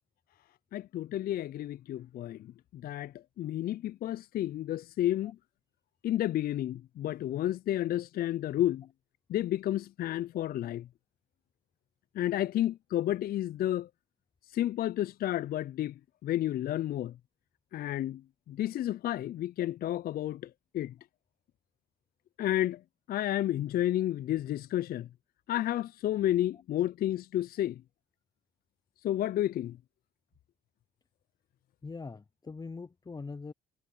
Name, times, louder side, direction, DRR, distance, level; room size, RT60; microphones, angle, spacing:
voice 1, 0.7-5.4 6.0-8.9 9.3-10.9 12.1-13.9 14.5-17.2 17.7-18.2 18.5-20.9 22.4-22.8 23.1-25.1 25.5-27.8 29.0-29.8, left 13 dB, 55° left, 0.6 m, -31 dB
voice 2, 31.8-33.5, left 4 dB, 20° left, 0.7 m, -42 dB
hypercardioid pair, 55°, 18 cm